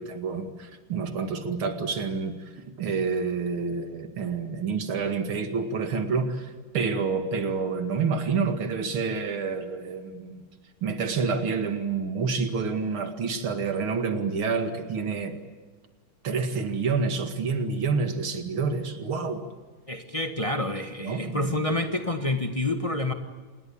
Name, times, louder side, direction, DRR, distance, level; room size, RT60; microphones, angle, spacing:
voice 1, 0.0-2.3 2.8-10.4 10.8-15.4 16.2-19.4 21.0-21.4, right 5 dB, 90° right, 7 dB, 3.0 m, -28 dB
voice 2, 19.9-23.1, left 2 dB, 20° left, 6 dB, 1.5 m, -28 dB
27.0 x 20.5 x 8.6 m, 1.4 s
omnidirectional pair, 2.2 m